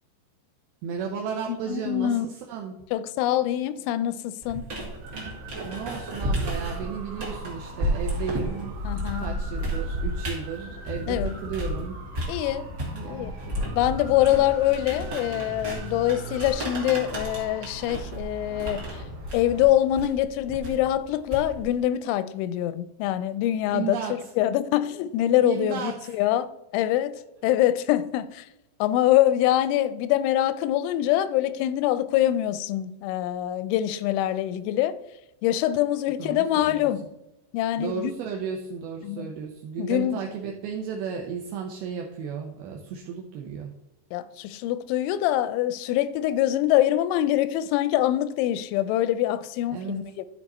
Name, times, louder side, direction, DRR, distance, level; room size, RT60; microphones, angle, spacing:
voice 1, 0.8-2.7 5.6-8.7 9.2-12.0 12.3-12.4 12.9-13.8 23.7-24.1 25.4-26.1 36.2-36.9 37.8-43.7 49.7-50.0, right 7 dB, 85° right, 2.2 m, -34 dB
voice 2, 1.5-2.3 2.9-4.7 8.8-9.3 11.1-11.4 12.3-12.7 13.1-13.3 13.8-19.0 19.3-24.0 24.4-26.5 26.7-28.5 28.8-35.0 35.4-37.1 37.5-38.2 39.0-39.3 39.8-40.3 44.1-50.3, left 13 dB, 90° left, 3.0 m, -24 dB
sound 1, 4.4-11.8 12.1-21.8, equal, 40° right, 1.6 m, -32 dB
sound 2, 5.0-19.7, right 1 dB, 65° right, 1.3 m, -40 dB
12.5 x 4.7 x 4.2 m
omnidirectional pair, 5.3 m